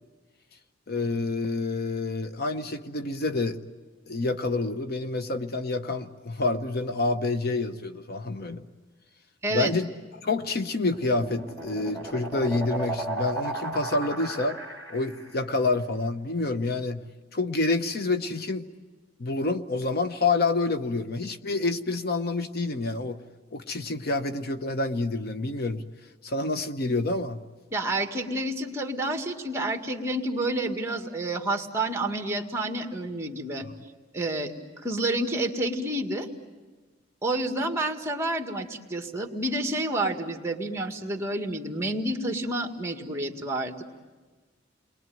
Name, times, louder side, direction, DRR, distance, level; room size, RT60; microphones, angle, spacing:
voice 1, 0.9-3.6 4.1-8.6 9.5-9.9 10.2-14.6 14.9-17.0 17.3-18.7 19.2-23.2 23.5-25.8 26.2-27.4 33.6-33.7, left 3 dB, 55° left, 9 dB, 0.9 m, -28 dB
voice 2, 9.4-9.7 27.7-33.6 34.1-34.5 34.8-36.3 37.2-43.8, right 1 dB, 15° right, 4 dB, 1.9 m, -29 dB
sound 1, 10.6-15.4, right 2 dB, 20° left, 4.0 m, -35 dB
29.5 x 22.0 x 9.2 m, 1.3 s
head